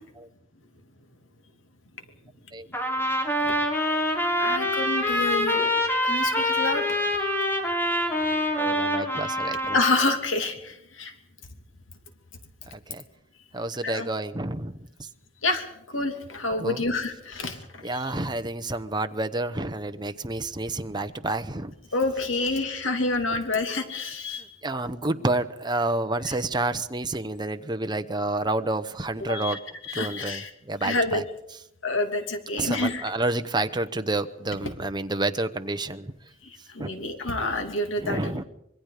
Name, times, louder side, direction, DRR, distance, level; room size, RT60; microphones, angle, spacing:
Trumpet, 2.7-10.2, left 1 dB, 10° left, 3.5 m, -25 dB
voice 1, 4.4-6.8 9.7-11.1 13.8-14.1 15.4-17.6 17.9-18.0 21.9-24.5 29.3-29.6 29.9-30.5 30.8-31.2 31.8-33.0 34.6-34.7 36.7-38.3, left 2 dB, 85° left, 6 dB, 2.9 m, -28 dB
voice 2, 8.6-9.8 12.7-13.0 13.5-14.8 16.6-16.8 17.8-21.7 24.6-29.6 29.9-31.2 32.6-36.1 36.8-36.9 38.0-38.4, right 2 dB, 25° right, 8 dB, 1.0 m, -29 dB
26.0 x 22.5 x 5.1 m, 0.78 s
head